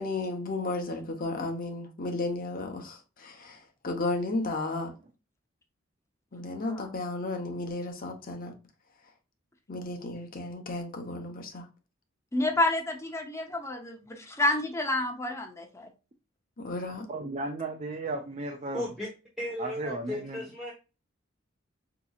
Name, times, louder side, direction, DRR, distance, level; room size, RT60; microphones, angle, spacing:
voice 1, 0.0-4.9 6.3-8.5 9.7-11.7 16.6-17.1, left 2 dB, 45° left, 0.8 m, -33 dB
voice 2, 12.3-15.9, left 2 dB, 15° left, 0.6 m, -29 dB
voice 3, 17.1-18.8 19.6-20.4, right 2 dB, 35° right, 0.4 m, -35 dB
voice 4, 18.7-19.1 19.4-20.7, left 1 dB, ahead, 1.0 m, -35 dB
5.1 x 2.9 x 2.3 m
head